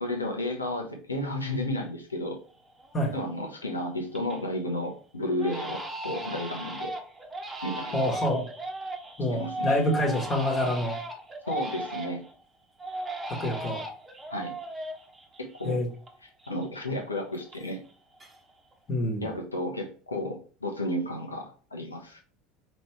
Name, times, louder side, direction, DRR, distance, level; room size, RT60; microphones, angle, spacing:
voice 1, 0.0-2.4 3.1-6.9 7.6-8.0 9.3-9.9 11.5-12.2 14.3-14.5 15.4-15.8 16.2-17.8 19.2-22.2, left 1 dB, 85° left, 3 dB, 1.0 m, -32 dB
Crying sobbing, 2.2-2.3 2.8-3.3 3.7-4.5 4.8-5.0 5.4-12.3 12.8-16.1 16.4-17.9 18.2-18.7, right 1 dB, 20° right, 1.1 m, -37 dB
voice 2, 7.9-8.4 9.2-11.0 13.3-13.8 15.6-15.9 18.9-19.2, left 1 dB, 30° left, -1 dB, 1.4 m, -27 dB
5.2 x 3.2 x 3.2 m, 0.41 s
figure-of-eight pair, 70°, 0 cm